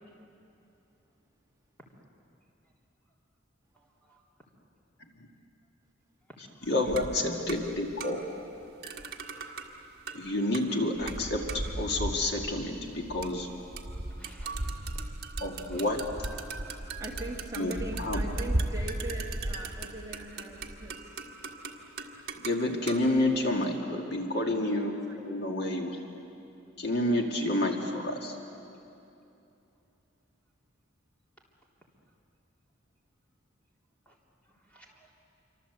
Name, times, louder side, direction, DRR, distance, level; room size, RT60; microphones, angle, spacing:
voice 1, 3.7-4.3 14.1-15.1 15.5-15.9 34.1-34.2 34.7-35.1, right 1 dB, 5° left, -3 dB, 3.4 m, -58 dB
voice 2, 6.6-8.2 10.1-13.5 15.4-16.1 17.6-17.7 18.0-18.2 22.4-26.0 26.8-28.4, left 1 dB, 55° left, 1 dB, 2.2 m, -29 dB
sound 1, 6.6-8.5 8.8-23.8, right 2 dB, 50° right, 1.7 m, -37 dB
voice 3, 17.0-21.0 24.2-24.6 25.1-25.2 26.9-27.2, right 2 dB, 15° right, -1 dB, 2.1 m, -41 dB
27.0 x 25.0 x 8.1 m, 2.8 s
head